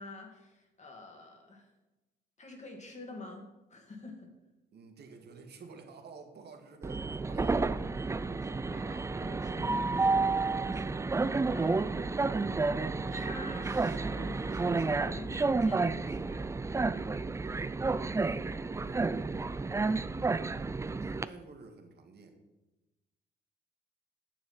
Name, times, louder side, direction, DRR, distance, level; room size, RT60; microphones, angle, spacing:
voice 1, 0.0-1.7 2.4-4.3 8.2-12.5 13.1-16.5, left 2 dB, 35° left, 2 dB, 2.5 m, -48 dB
voice 2, 4.7-7.7 9.4-9.5 11.2-11.5 18.5-19.2 21.0-22.3, right 4 dB, 55° right, 4 dB, 1.8 m, -51 dB
Train, 6.8-21.2, right 3 dB, 15° right, 0.4 m, -31 dB
9.4 x 7.1 x 5.8 m, 1.0 s
cardioid pair, 90°, 20 cm